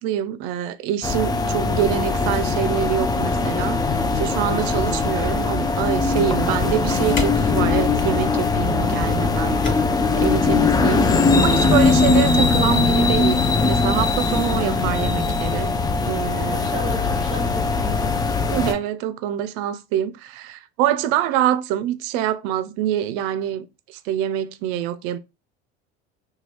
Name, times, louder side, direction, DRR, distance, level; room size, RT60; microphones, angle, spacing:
voice 1, 0.0-9.8 10.1-11.1 11.4-13.4 13.6-15.7 16.1-16.5 18.5-25.2, right 11 dB, 60° right, 0.5 m, -25 dB
sound 1, 1.0-18.7, left 4 dB, 15° left, 0.3 m, -20 dB
sound 2, 4.5-10.1, left 2 dB, 35° left, 1.4 m, -37 dB
voice 2, 10.8-11.2 16.4-18.3, right 2 dB, 20° right, 0.8 m, -34 dB
2.8 x 2.3 x 3.1 m
hypercardioid pair, 75°, 33 cm